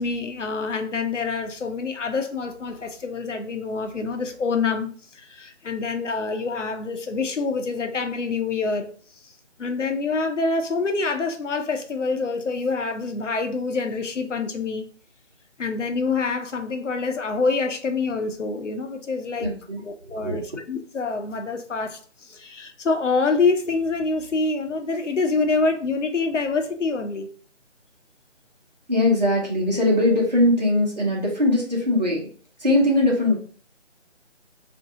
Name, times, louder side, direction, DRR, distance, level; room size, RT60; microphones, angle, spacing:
voice 1, 0.0-8.9 9.2-9.3 9.6-14.9 15.6-19.5 19.8-27.3, left 4 dB, 80° left, 0.7 m, -26 dB
voice 2, 19.4-20.4 28.9-32.3 32.6-33.4, left 1 dB, 35° right, 0.9 m, -21 dB
2.7 x 2.6 x 3.7 m
figure-of-eight pair, 175°, 36 cm